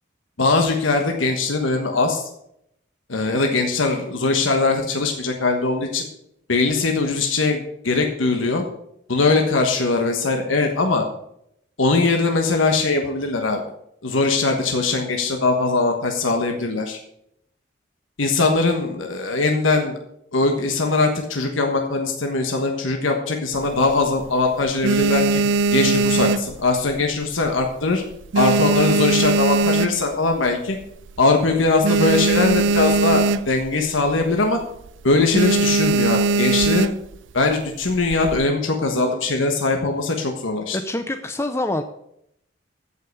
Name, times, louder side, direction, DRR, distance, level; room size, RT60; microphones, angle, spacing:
voice 1, 0.4-2.3 3.1-6.1 6.5-8.6 9.1-11.0 11.8-13.6 14.0-17.0 18.2-20.0 20.3-25.4 25.7-28.0 28.3-30.8 31.2-34.6 35.0-36.9 37.3-40.8, left 3 dB, 85° left, 3 dB, 1.3 m, -21 dB
sound 1, 23.5-24.3 24.7-27.1 27.4-27.8 28.1-30.3 30.8-30.9 31.1-31.2 31.5-33.7 34.0-34.3 34.6-34.9 35.3-37.2 37.9-38.5, right 3 dB, 70° right, 0.4 m, -20 dB
voice 2, 40.7-41.8, left 1 dB, 15° left, 7 dB, 0.6 m, -25 dB
14.5 x 5.6 x 6.8 m, 0.75 s
head